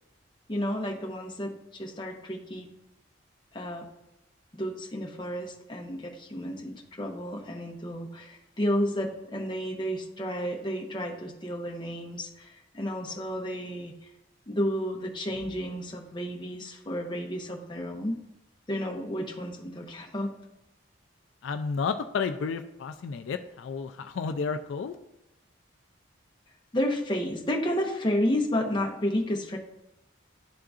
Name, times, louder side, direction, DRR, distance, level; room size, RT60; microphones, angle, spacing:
voice 1, 0.5-2.7 3.5-3.9 4.5-13.9 14.5-18.2 18.7-20.3 26.7-29.6, equal, 25° left, 0 dB, 0.7 m, -31 dB
voice 2, 21.4-24.9, left 5 dB, 75° left, 8 dB, 0.3 m, -31 dB
11.0 x 3.7 x 2.4 m, 0.90 s
head